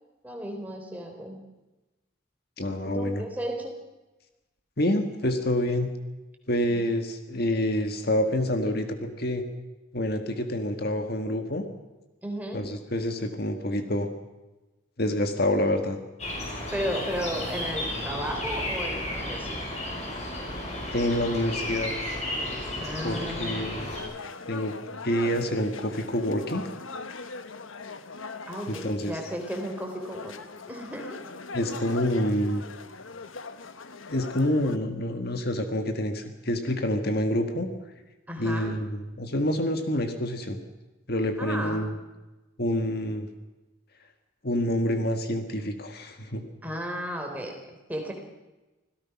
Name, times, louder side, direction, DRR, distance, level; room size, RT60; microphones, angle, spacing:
voice 1, 0.2-1.4 2.8-3.7 12.2-12.6 16.7-19.6 22.8-23.7 28.5-30.3 30.7-31.2 38.3-38.8 41.4-41.9 46.6-48.1, equal, 10° right, 2 dB, 3.6 m, -34 dB
voice 2, 2.6-3.2 4.8-5.9 6.5-9.4 9.9-11.6 12.5-14.1 15.0-16.0 20.9-21.9 23.0-23.9 24.5-24.7 25.0-26.8 28.7-29.2 31.5-32.6 34.1-37.7 38.4-40.6 41.1-42.0 42.6-43.3 44.4-46.4, left 1 dB, 50° left, 6 dB, 1.7 m, -27 dB
sound 1, 16.2-24.0, left 1 dB, 35° left, 6.4 m, -33 dB
sound 2, 23.8-34.8, left 4 dB, 90° left, 1.3 m, -41 dB
26.0 x 17.0 x 6.0 m, 1.1 s
head